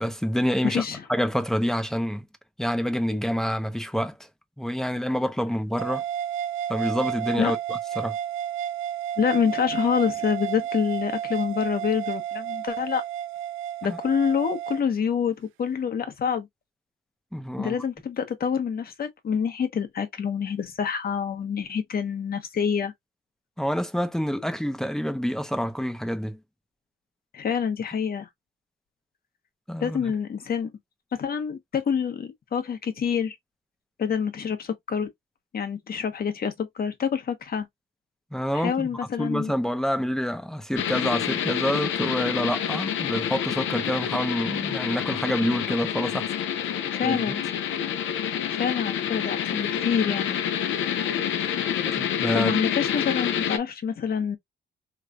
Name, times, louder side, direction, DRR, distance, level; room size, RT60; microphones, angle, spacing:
voice 1, 0.0-0.8 1.1-2.3 2.6-4.2 4.6-6.0 6.7-8.2 13.8-14.0 17.3-17.8 23.6-26.4 29.7-30.0 38.3-38.9 39.2-46.3 47.0-47.3 51.8-52.6, equal, ahead, 0.7 m, -27 dB
voice 2, 0.6-1.0 7.4-7.5 9.2-13.0 13.8-16.5 17.6-22.9 27.3-28.3 29.8-30.7 31.1-33.4 34.0-35.1 35.5-37.7 38.5-39.5 46.8-47.4 48.5-50.4 52.3-54.4, left 7 dB, 50° left, 1.1 m, -27 dB
sound 1, 5.8-14.8, right 10 dB, 85° right, 0.5 m, -31 dB
sound 2, 40.8-53.6, left 9 dB, 75° left, 0.7 m, -28 dB
3.2 x 3.1 x 2.4 m
cardioid pair, 90°, 20 cm